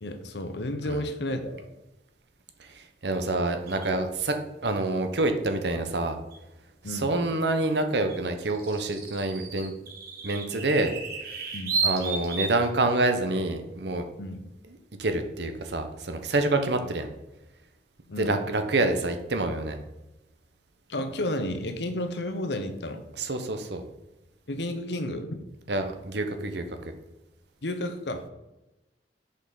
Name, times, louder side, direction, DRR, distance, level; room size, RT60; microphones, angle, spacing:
voice 1, 0.0-1.7 6.8-7.1 11.5-11.8 14.2-14.4 16.8-16.9 18.1-18.4 20.9-23.1 24.5-25.4 27.6-28.3, left 1 dB, 75° left, 8 dB, 0.8 m, -32 dB
voice 2, 2.6-4.4 4.6-6.2 6.9-9.7 10.2-10.9 11.8-14.1 14.7-17.1 18.2-19.8 23.1-23.8 25.7-26.6, right 2 dB, 75° right, 7 dB, 0.9 m, -27 dB
sound 1, 3.7-3.9 6.3-6.4 8.1-12.7, right 5 dB, 55° right, 1.5 m, -32 dB
6.5 x 5.4 x 4.0 m, 0.98 s
head